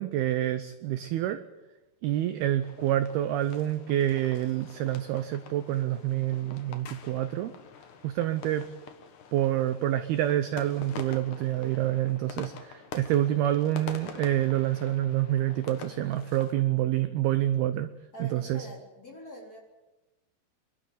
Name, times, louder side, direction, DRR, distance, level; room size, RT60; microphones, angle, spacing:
voice 1, 0.0-1.4 2.0-7.5 8.0-8.7 9.3-17.9 18.2-18.7, right 13 dB, 80° right, 11 dB, 2.2 m, -27 dB
sound 1, 2.6-16.5, left 6 dB, 60° left, 2.2 m, -46 dB
voice 2, 18.1-19.6, equal, 20° left, -1 dB, 3.6 m, -44 dB
26.5 x 12.5 x 9.4 m, 1.1 s
omnidirectional pair, 5.5 m